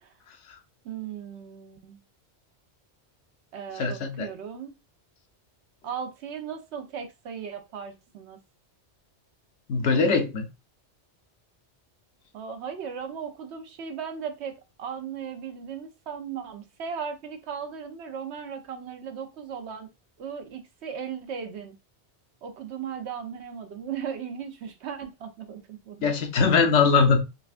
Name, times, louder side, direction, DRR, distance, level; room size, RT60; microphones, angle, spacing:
voice 1, 0.8-2.0 3.5-4.8 5.8-8.4 12.3-19.9 20.2-21.7 22.4-26.1 26.4-26.5, right 7 dB, 70° right, 0.9 m, -37 dB
voice 2, 3.8-4.3 9.7-10.5 26.0-27.2, left 5 dB, 80° left, 1.0 m, -21 dB
5.7 x 2.2 x 2.4 m
omnidirectional pair, 1.2 m